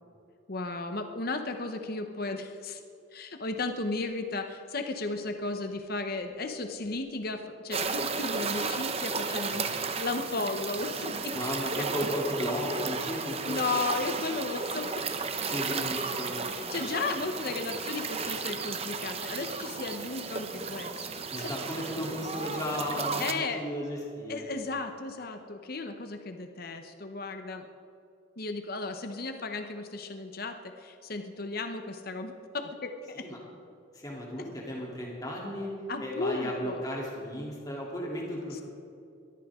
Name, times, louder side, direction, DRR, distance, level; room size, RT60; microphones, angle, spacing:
voice 1, 0.5-2.8 3.1-9.7 10.0-11.4 11.6-11.9 13.5-15.0 16.5-21.1 21.4-21.5 23.2-23.6 24.3-27.7 28.4-33.3 34.4-34.5 35.9-36.8, left 3 dB, 50° left, 6 dB, 0.9 m, -35 dB
sound 1, 7.7-23.3, right 4 dB, 30° right, 0.8 m, -34 dB
voice 2, 9.5-9.8 11.3-13.7 15.5-16.5 16.8-16.9 21.3-24.5 33.1-33.4 33.9-35.7 36.0-38.6, left 1 dB, 20° left, -4 dB, 3.2 m, -35 dB
21.5 x 14.0 x 3.7 m, 2.5 s
head